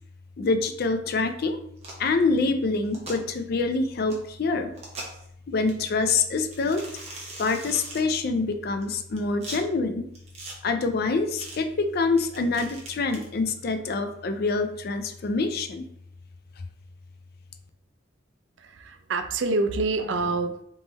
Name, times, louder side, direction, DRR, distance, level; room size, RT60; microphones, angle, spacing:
voice 1, 0.4-1.6 2.0-4.7 5.5-6.8 7.4-10.0 10.6-15.8, left 3 dB, 50° left, 8 dB, 0.4 m, -26 dB
sound 1, 1.8-2.1 2.8-3.2 4.1-4.2 4.7-5.3 5.7-5.8 6.5-8.0 8.8-9.6 10.1-10.5 11.4-11.6 12.2-13.3, right 2 dB, 30° right, 0.9 m, -40 dB
voice 2, 18.6-20.6, right 3 dB, 65° right, 8 dB, 0.4 m, -27 dB
3.6 x 3.0 x 4.0 m, 0.72 s
head